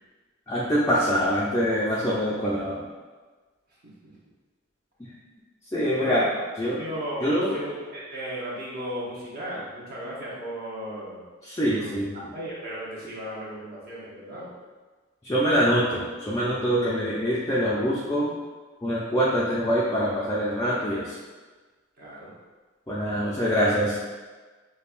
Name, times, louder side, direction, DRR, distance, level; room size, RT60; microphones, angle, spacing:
voice 1, 0.5-2.9 5.0-5.1 5.7-6.3 6.6-6.8 7.2-7.6 11.4-12.1 15.2-18.3 18.8-21.2 22.9-24.0, equal, 15° left, -8 dB, 0.4 m, -24 dB
voice 2, 3.8-4.1 6.0-6.2 6.8-11.3 11.6-12.0 12.3-14.5 22.0-22.3, equal, 50° right, -6 dB, 0.9 m, -36 dB
5.2 x 2.2 x 2.4 m, 1.4 s
head